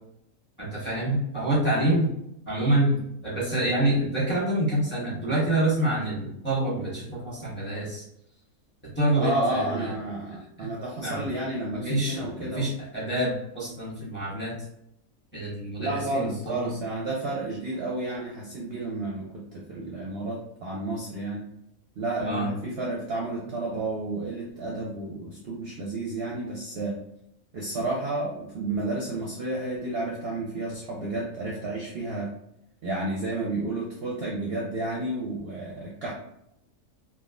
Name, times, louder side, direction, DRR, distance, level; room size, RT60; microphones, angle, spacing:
voice 1, 0.6-2.1 2.5-8.0 8.9-9.9 10.6-10.7 11.0-11.3 11.7-14.6 15.3-16.7 22.2-22.5, right 1 dB, 10° left, -7 dB, 1.1 m, -27 dB
voice 2, 9.2-12.7 15.8-21.4 22.0-27.0 27.5-32.3 32.8-36.1, right 2 dB, 55° right, -3 dB, 0.7 m, -31 dB
3.4 x 2.4 x 2.4 m, 0.78 s
omnidirectional pair, 1.5 m